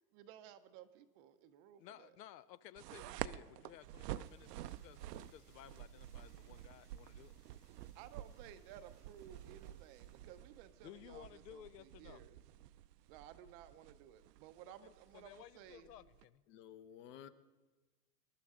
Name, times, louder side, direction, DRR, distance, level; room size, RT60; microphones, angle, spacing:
voice 1, 0.1-2.1 7.9-12.4 13.1-15.9, right 10 dB, 35° right, 11 dB, 0.6 m, -57 dB
voice 2, 1.8-7.3 10.8-12.2 14.8-16.4, left 12 dB, 80° left, 17 dB, 0.7 m, -57 dB
sound 1, 2.8-16.2, right 14 dB, 80° right, 0.6 m, -50 dB
sound 2, 3.7-10.9, left 7 dB, 30° left, 2.1 m, -77 dB
voice 3, 16.5-17.3, left 9 dB, 50° left, 14 dB, 0.9 m, -53 dB
22.5 x 11.5 x 3.6 m, 1.2 s
supercardioid pair, 145°, 48 cm